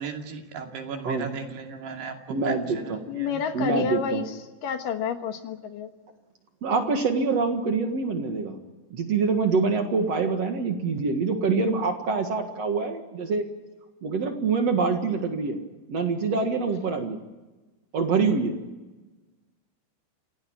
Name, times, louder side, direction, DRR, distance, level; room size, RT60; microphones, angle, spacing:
voice 1, 0.0-3.4, right 6 dB, 90° right, 3 dB, 4.7 m, -37 dB
voice 2, 2.3-3.0 3.5-4.2 6.6-8.6 8.9-13.4 14.0-15.6 15.9-17.2 17.9-18.6, right 4 dB, 50° right, 5 dB, 2.4 m, -25 dB
voice 3, 3.1-5.9, left 7 dB, 65° left, 7 dB, 2.7 m, -30 dB
27.5 x 17.0 x 9.0 m, 1.2 s
omnidirectional pair, 4.6 m